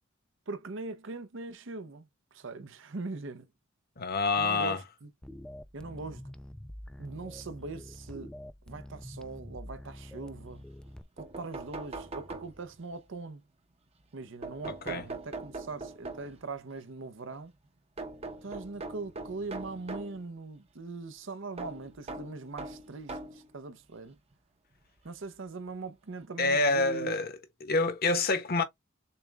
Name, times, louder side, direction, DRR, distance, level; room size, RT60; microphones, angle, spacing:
voice 1, 0.5-3.5 4.4-5.1 5.7-6.3 7.0-8.3 8.7-10.6 11.2-13.4 14.1-17.5 18.4-24.2 25.0-27.1, right 3 dB, 70° right, 0.8 m, -41 dB
voice 2, 4.0-4.8 14.6-15.0 26.4-27.3 27.6-28.6, left 3 dB, 50° left, 1.0 m, -27 dB
sound 1, 5.2-11.0, equal, 5° left, 0.4 m, -46 dB
sound 2, 10.9-11.0 11.2-12.9 14.4-16.5 18.0-20.2 21.6-23.5 24.3-24.4 25.7-25.8 26.2-26.3, right 2 dB, 30° right, 0.8 m, -41 dB
6.8 x 2.3 x 3.4 m
head